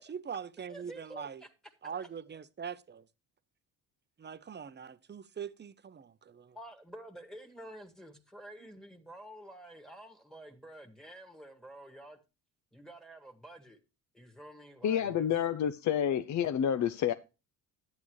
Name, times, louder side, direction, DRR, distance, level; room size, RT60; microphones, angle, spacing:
voice 1, 0.1-1.4 1.8-3.1 4.2-6.6 8.6-8.7, right 7 dB, 30° right, 0.7 m, -42 dB
voice 2, 0.7-1.5 6.5-12.2 12.7-13.8 14.1-15.3, right 1 dB, ahead, 1.8 m, -49 dB
voice 3, 14.8-17.1, left 9 dB, 50° left, 0.6 m, -29 dB
11.0 x 8.5 x 3.1 m
cardioid pair, 90°, 38 cm